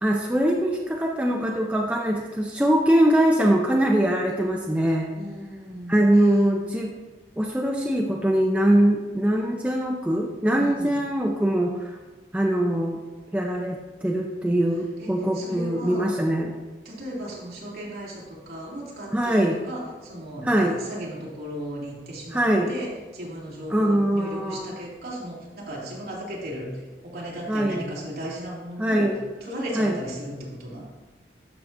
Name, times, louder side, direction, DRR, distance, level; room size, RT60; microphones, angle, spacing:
voice 1, 0.0-5.1 5.9-6.9 7.4-11.9 12.3-13.0 13.3-16.5 19.1-19.6 20.4-20.8 22.3-22.7 23.7-24.7 27.5-27.9 28.8-29.2 29.8-30.0, right 1 dB, 5° right, -1 dB, 0.5 m, -22 dB
voice 2, 5.1-6.4 10.6-11.0 15.0-16.1 16.8-30.8, equal, 60° right, -5 dB, 2.4 m, -36 dB
13.0 x 5.7 x 2.6 m, 1.2 s
head